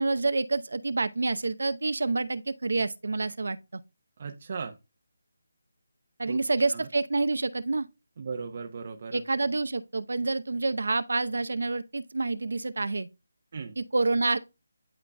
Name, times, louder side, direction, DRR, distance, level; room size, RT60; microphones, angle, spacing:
voice 1, 0.0-3.8 6.2-7.9 9.1-13.1 13.8-14.4, right 3 dB, 75° right, 0.7 m, -28 dB
voice 2, 4.2-4.8 6.3-6.4 6.7-6.9 8.2-9.2 13.5-13.8, right 5 dB, 40° right, 0.8 m, -37 dB
12.0 x 3.9 x 2.2 m
figure-of-eight pair, 170°, 0 cm